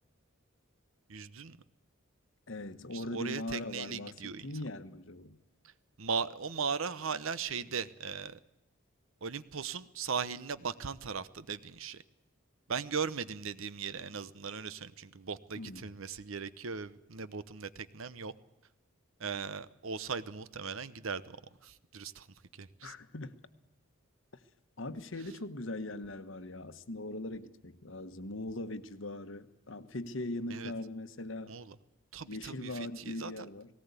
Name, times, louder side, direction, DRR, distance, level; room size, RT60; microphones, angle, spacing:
voice 1, 1.1-1.6 2.9-4.5 6.0-8.4 9.2-12.0 12.7-18.3 19.2-21.4 21.6-22.3 22.5-22.9 30.5-30.7 31.5-31.8 32.1-33.4, right 5 dB, 75° right, 15 dB, 0.9 m, -38 dB
voice 2, 2.5-5.4 15.6-15.9 22.8-23.3 24.8-31.5 32.3-33.7, left 2 dB, 65° left, 11 dB, 1.2 m, -40 dB
18.5 x 18.0 x 8.2 m, 0.93 s
head